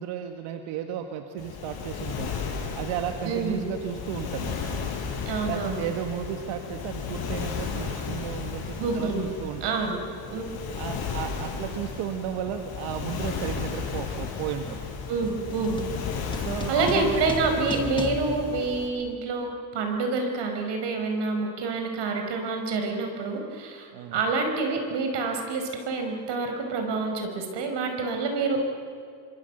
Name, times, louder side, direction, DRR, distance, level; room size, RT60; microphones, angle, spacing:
voice 1, 0.0-2.4 2.7-4.7 5.5-9.8 10.7-14.7 16.3-17.2 23.9-24.2, right 9 dB, 90° right, 6 dB, 1.7 m, -34 dB
Waves surf, 1.4-18.9, left 5 dB, 50° left, 6.0 m, -34 dB
voice 2, 3.2-3.7 5.3-5.8 8.8-9.3 9.6-10.0 10.3-10.4 15.1-15.8 16.7-28.6, right 3 dB, 60° right, 4 dB, 5.3 m, -27 dB
sound 1, 10.3-10.5 10.8-19.4, left 3 dB, 10° left, 1.5 m, -40 dB
26.0 x 26.0 x 8.0 m, 2.3 s
cardioid pair, 135°, 46 cm